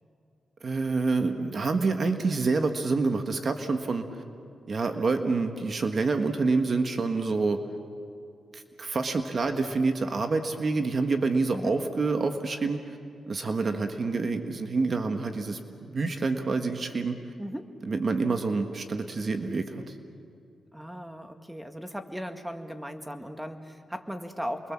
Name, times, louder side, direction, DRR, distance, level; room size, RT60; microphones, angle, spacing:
voice 1, 0.6-4.1 4.7-7.6 8.5-13.0 13.3-17.2 17.8-19.8, right 3 dB, 45° right, 6 dB, 1.5 m, -27 dB
voice 2, 17.4-17.7 20.7-24.7, equal, 5° right, 7 dB, 1.9 m, -37 dB
29.0 x 22.5 x 7.4 m, 2.4 s
cardioid pair, 80°, 0 cm